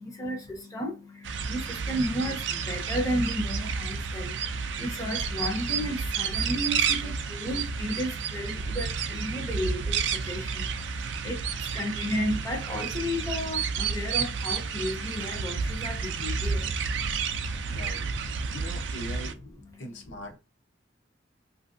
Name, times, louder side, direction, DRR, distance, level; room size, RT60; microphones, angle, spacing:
voice 1, 0.0-0.9 1.5-2.4 2.7-4.3 4.8-10.6 11.2-11.4 11.7-16.6, equal, 20° left, 0.5 m, -32 dB
sound 1, 1.2-19.3, right 5 dB, 70° right, 0.4 m, -31 dB
voice 2, 17.7-18.1 18.5-19.4 19.8-20.4, equal, 80° left, 0.8 m, -40 dB
3.0 x 2.6 x 2.6 m
head